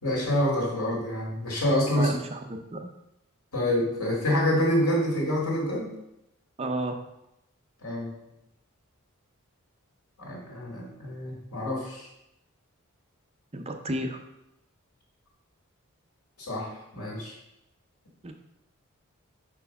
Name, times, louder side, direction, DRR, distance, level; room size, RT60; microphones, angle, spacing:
voice 1, 0.0-2.1 3.5-5.9 7.8-8.1 10.2-12.1 16.4-17.3, left 1 dB, 85° left, -3 dB, 2.4 m, -27 dB
voice 2, 2.0-2.8 6.6-7.0 13.5-14.2 18.2-18.3, right 1 dB, 30° right, 5 dB, 0.6 m, -32 dB
5.1 x 4.6 x 5.4 m, 0.86 s
head